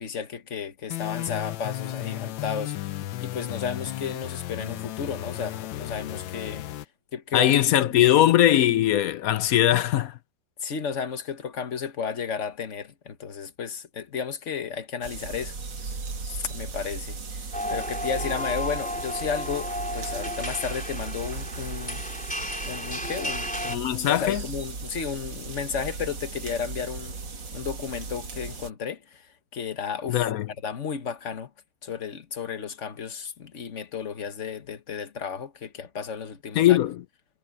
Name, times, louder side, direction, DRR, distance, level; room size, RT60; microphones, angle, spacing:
voice 1, 0.0-6.7 7.1-8.1 10.6-15.6 16.3-22.0 22.6-27.2 27.5-30.3 30.6-31.5 31.8-36.8, left 6 dB, 45° left, 1.5 m, -33 dB
sound 1, 0.9-6.9, left 15 dB, 90° left, 1.5 m, -34 dB
voice 2, 7.3-10.2 23.7-24.4 30.1-30.5 36.6-37.0, left 12 dB, 70° left, 0.8 m, -20 dB
sound 2, 15.0-28.7, right 4 dB, 70° right, 3.0 m, -37 dB
sound 3, 17.5-23.8, left 1 dB, 5° left, 3.9 m, -33 dB
omnidirectional pair, 2.0 m